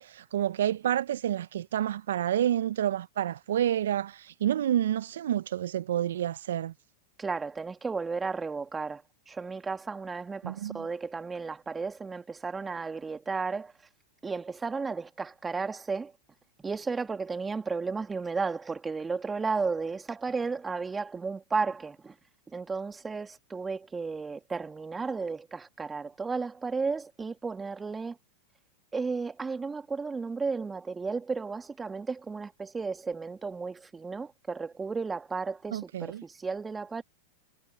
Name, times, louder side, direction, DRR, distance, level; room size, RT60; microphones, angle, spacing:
voice 1, 0.0-6.7 10.4-10.8 35.7-36.2, right 11 dB, 70° right, 0.6 m, -29 dB
voice 2, 7.2-13.7 14.2-16.1 16.6-22.2 22.5-28.2 28.9-37.0, right 4 dB, 15° right, 2.0 m, -33 dB
hypercardioid pair, 95°, 0 cm